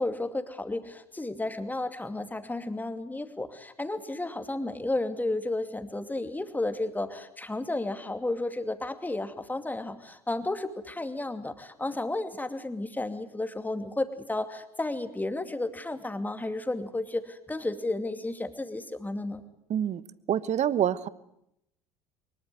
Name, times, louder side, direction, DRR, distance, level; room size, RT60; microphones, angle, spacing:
voice 1, 0.0-19.4, left 2 dB, 10° left, 8 dB, 2.5 m, -32 dB
voice 2, 19.7-20.0 20.3-21.1, right 10 dB, 35° right, 18 dB, 1.2 m, -26 dB
23.5 x 22.5 x 8.0 m, 0.79 s
figure-of-eight pair, 65°, 19 cm